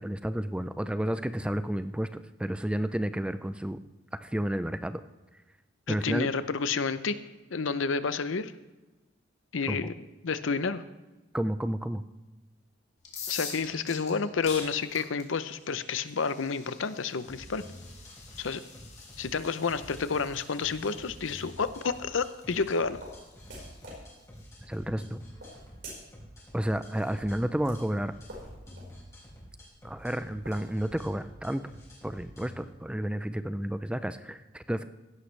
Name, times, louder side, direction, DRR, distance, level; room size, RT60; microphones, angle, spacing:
voice 1, 0.0-3.8 4.2-5.0 5.9-6.3 9.7-9.9 11.3-12.0 24.7-25.2 26.5-28.1 29.8-31.7 32.0-34.8, right 1 dB, 5° right, 12 dB, 0.4 m, -31 dB
voice 2, 5.9-7.2 7.5-8.5 9.5-10.0 10.2-10.8 13.3-17.6 18.4-18.6 19.2-23.0, left 5 dB, 80° left, 13 dB, 0.7 m, -30 dB
sound 1, 13.0-24.7, left 5 dB, 35° left, 2.2 m, -46 dB
sound 2, 17.2-32.6, equal, 15° left, 4.3 m, -49 dB
sound 3, 22.3-31.1, right 1 dB, 60° right, 4.7 m, -50 dB
16.5 x 11.5 x 3.3 m, 1.1 s
head